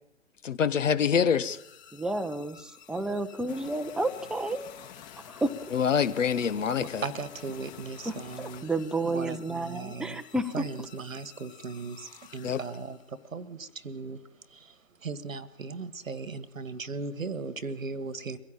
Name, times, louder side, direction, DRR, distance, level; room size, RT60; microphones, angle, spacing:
voice 1, 0.4-1.6 5.7-7.0 12.4-12.6, left 7 dB, 65° left, 1.6 m, -25 dB
sound 1, 1.5-13.3, left 7 dB, 20° left, 3.1 m, -54 dB
voice 2, 1.9-4.7 5.2-5.5 8.0-10.6, right 2 dB, ahead, 0.8 m, -31 dB
sound 2, 3.5-8.6, left 10 dB, 35° left, 2.3 m, -49 dB
voice 3, 6.8-8.7 9.0-10.2 10.5-14.2 14.5-18.4, right 4 dB, 80° right, 1.9 m, -37 dB
23.5 x 16.0 x 8.8 m
figure-of-eight pair, 125°, 40 cm